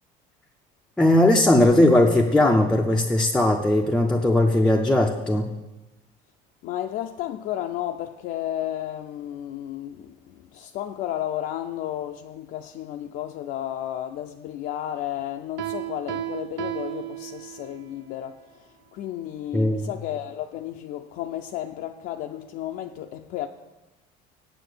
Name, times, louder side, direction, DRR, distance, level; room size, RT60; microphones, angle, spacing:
voice 1, 1.0-5.5 19.5-19.9, left 1 dB, 5° left, 0.5 m, -19 dB
voice 2, 6.6-23.5, left 12 dB, 60° left, 0.5 m, -33 dB
Piano, 15.6-17.9, right 15 dB, 85° right, 0.6 m, -33 dB
7.9 x 7.4 x 6.6 m
cardioid pair, 165°, 17 cm